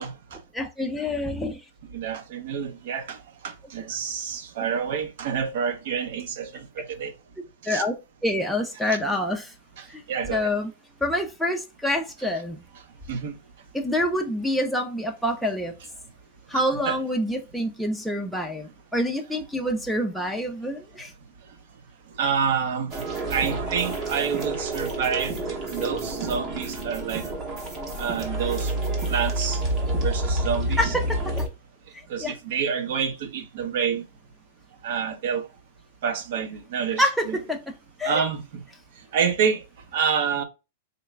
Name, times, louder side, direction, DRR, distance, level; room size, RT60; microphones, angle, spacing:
voice 1, 0.0-0.4 1.9-3.2 3.4-7.1 7.7-7.8 8.8-9.0 10.1-10.5 13.1-13.3 16.5-17.0 22.2-22.9 23.3-25.3 25.7-27.2 28.0-28.7 29.1-29.6 30.0-30.9 32.1-34.0 34.8-35.5 36.0-37.4 38.0-38.4 39.1-39.6 39.9-40.4, right 7 dB, 55° right, 0.7 m, -28 dB
voice 2, 0.5-1.6 7.7-7.9 8.2-9.5 10.3-10.7 11.0-12.6 13.7-15.7 16.5-21.1 30.8-31.4 32.2-32.3 37.0-37.6 38.0-38.2, left 1 dB, ahead, 0.4 m, -26 dB
sound 1, 22.9-31.5, right 2 dB, 25° right, 0.8 m, -28 dB
3.9 x 2.2 x 3.2 m
supercardioid pair, 170°, 0 cm